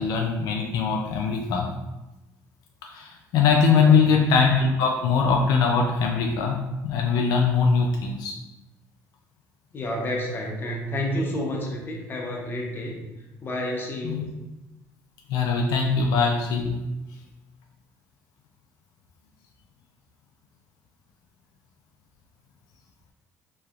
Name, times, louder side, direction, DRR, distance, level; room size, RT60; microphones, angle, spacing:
voice 1, 0.0-1.7 2.9-8.3 14.0-14.3 15.3-16.8, left 5 dB, 80° left, 1 dB, 0.4 m, -22 dB
voice 2, 9.7-13.0 13.4-14.3, left 1 dB, 35° left, 0 dB, 0.7 m, -30 dB
3.1 x 2.7 x 2.3 m, 1.0 s
cardioid pair, 105°, 7 cm